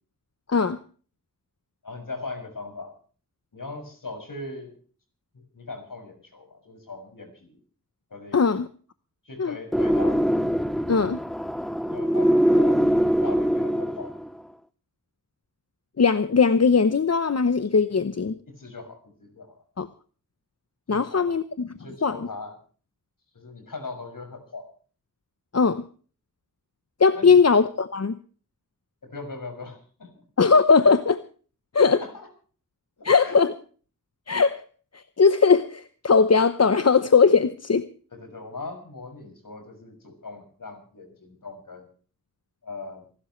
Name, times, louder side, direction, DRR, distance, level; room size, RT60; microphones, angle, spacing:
voice 1, 0.5-0.8 8.3-8.7 9.4-9.6 10.9-11.2 16.0-18.3 19.8-19.9 20.9-22.3 25.5-25.9 27.0-28.2 30.4-31.2 31.7-32.0 33.0-33.5 34.3-34.6 34.9-37.9, left 5 dB, 45° left, 12 dB, 0.9 m, -19 dB
voice 2, 1.8-3.0 3.5-4.8 5.3-7.6 8.1-8.4 9.2-10.2 11.8-12.8 13.2-14.2 18.5-19.6 20.9-21.4 21.7-22.6 23.3-24.7 27.1-27.4 29.0-30.2 31.8-32.3 33.0-33.4 38.1-41.9 42.6-43.0, left 3 dB, 60° left, 5 dB, 6.5 m, -39 dB
sound 1, 9.7-14.3, equal, ahead, 0.8 m, -22 dB
27.5 x 12.5 x 3.2 m, 0.41 s
wide cardioid pair, 90°, 36 cm